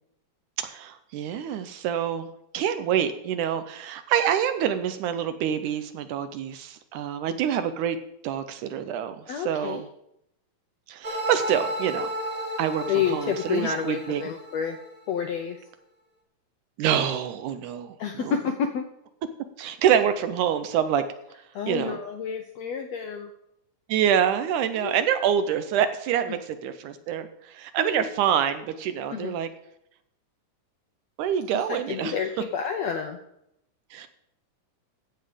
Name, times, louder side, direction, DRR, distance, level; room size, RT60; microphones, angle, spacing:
voice 1, 0.6-2.3 2.5-8.0 8.2-9.9 10.9-12.1 12.6-14.2 16.8-18.3 19.6-21.1 21.7-22.0 23.9-29.5 31.2-32.2 33.9-34.1, right 9 dB, 75° right, 10 dB, 2.0 m, -26 dB
voice 2, 9.3-9.8 12.9-14.8 15.1-15.6 18.0-18.9 21.5-23.3 24.7-25.1 26.3-26.4 27.8-28.1 29.1-29.3 31.5-33.2, left 7 dB, 75° left, 5 dB, 1.6 m, -29 dB
sound 1, 11.0-15.0, right 1 dB, 20° right, 0.9 m, -33 dB
14.5 x 7.8 x 5.0 m, 0.78 s
omnidirectional pair, 3.9 m